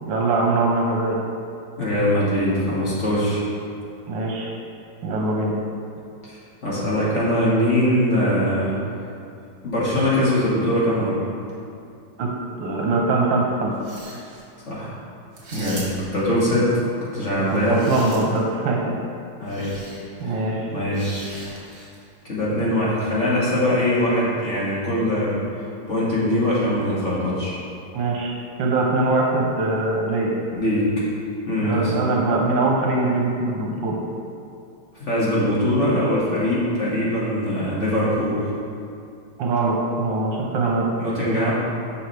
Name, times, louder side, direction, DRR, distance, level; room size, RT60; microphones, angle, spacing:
voice 1, 0.0-1.2 4.1-4.5 5.0-5.5 12.2-12.3 12.6-13.7 15.5-15.9 17.7-18.9 20.2-20.7 27.9-28.3 28.6-30.3 31.6-34.0 39.4-40.9, right 2 dB, 85° right, -1 dB, 1.6 m, -22 dB
voice 2, 1.8-3.5 6.2-8.7 9.6-11.2 14.7-14.9 15.5-17.8 19.4-19.7 20.2-20.4 20.7-21.3 22.2-25.5 25.9-27.6 30.5-30.9 31.5-31.9 35.0-38.4 41.0-41.5, equal, 40° left, -8 dB, 2.0 m, -22 dB
sound 1, 13.7-14.4 15.3-16.2 17.4-18.5 19.5-20.0 20.9-22.0, right 2 dB, 65° right, 2.2 m, -40 dB
10.5 x 5.8 x 3.4 m, 2.5 s
omnidirectional pair, 2.0 m